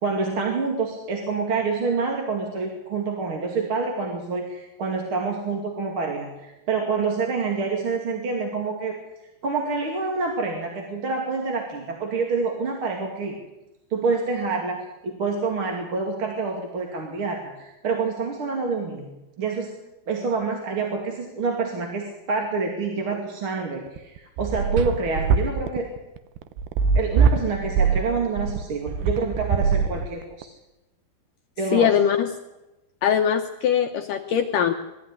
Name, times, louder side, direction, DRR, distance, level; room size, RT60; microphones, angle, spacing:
voice 1, 0.0-8.9 9.4-13.4 13.9-19.7 20.1-25.9 26.9-30.5 31.6-31.9, right 4 dB, 35° right, 1 dB, 2.6 m, -27 dB
sound 1, 23.9-30.4, right 6 dB, 80° right, 3.0 m, -22 dB
voice 2, 31.7-32.3 33.0-34.7, left 8 dB, 75° left, 5 dB, 2.0 m, -21 dB
21.0 x 14.0 x 9.7 m, 1.0 s
omnidirectional pair, 4.8 m